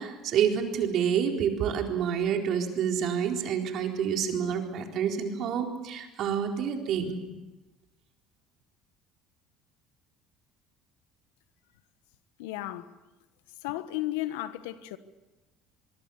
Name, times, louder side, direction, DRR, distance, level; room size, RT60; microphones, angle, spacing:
voice 1, 0.0-7.2, right 8 dB, 60° right, 4.1 m, -28 dB
voice 2, 12.4-12.9 13.6-15.0, left 15 dB, 85° left, 1.3 m, -34 dB
23.5 x 23.5 x 7.2 m
supercardioid pair, 85°, 0 cm